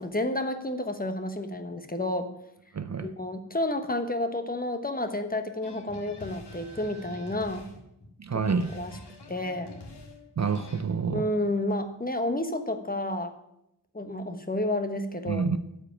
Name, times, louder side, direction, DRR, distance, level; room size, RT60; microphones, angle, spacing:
voice 1, 0.0-2.3 3.0-7.7 8.7-8.9 9.3-9.7 11.1-13.3 13.9-15.4, left 1 dB, 20° left, 1.2 m, -30 dB
voice 2, 2.7-3.1 8.2-8.8 10.4-11.3 15.3-15.6, right 5 dB, 40° right, 0.5 m, -28 dB
sound 1, 5.6-10.8, left 2 dB, 75° left, 1.9 m, -45 dB
13.0 x 5.0 x 8.8 m
wide cardioid pair, 95°, 41 cm